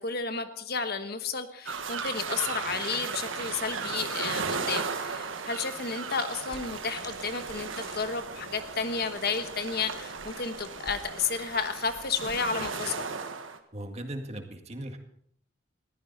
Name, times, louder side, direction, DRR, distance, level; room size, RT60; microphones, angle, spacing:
voice 1, 0.0-13.0, left 5 dB, 55° left, 9 dB, 1.3 m, -32 dB
sound 1, 1.7-13.6, right 5 dB, 85° right, 1.6 m, -36 dB
sound 2, 6.5-12.7, left 1 dB, 20° left, 2.5 m, -52 dB
voice 2, 13.7-15.0, right 1 dB, 35° right, 5 dB, 1.9 m, -38 dB
21.0 x 15.0 x 4.1 m, 0.66 s
head